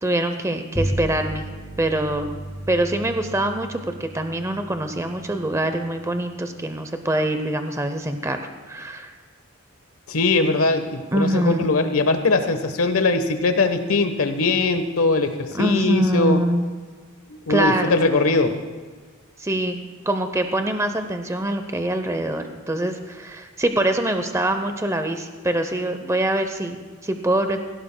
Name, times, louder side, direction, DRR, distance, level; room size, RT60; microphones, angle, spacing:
voice 1, 0.0-1.4 1.8-2.4 2.7-8.4 8.7-9.1 11.1-11.7 15.5-16.6 17.5-18.0 19.4-19.8 20.0-27.6, right 1 dB, 15° right, 7 dB, 0.6 m, -24 dB
Bowed string instrument, 0.7-6.4, right 1 dB, 10° left, 1.8 m, -34 dB
voice 2, 10.1-16.4 17.3-18.5, left 3 dB, 80° left, 8 dB, 1.1 m, -21 dB
17.5 x 16.5 x 2.2 m, 1.5 s
head